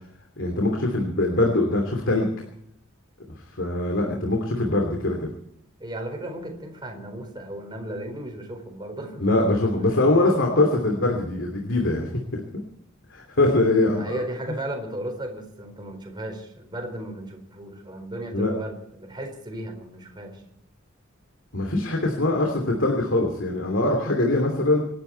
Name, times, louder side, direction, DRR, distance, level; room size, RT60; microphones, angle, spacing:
voice 1, 0.4-2.3 3.6-5.3 9.2-12.4 13.1-14.2 14.5-14.6 18.3-18.5 21.5-24.8, left 2 dB, 65° left, 1 dB, 2.9 m, -22 dB
voice 2, 5.8-9.2 13.9-20.4 22.2-22.6, right 1 dB, 20° right, 2 dB, 4.4 m, -35 dB
26.5 x 11.5 x 4.6 m, 0.74 s
head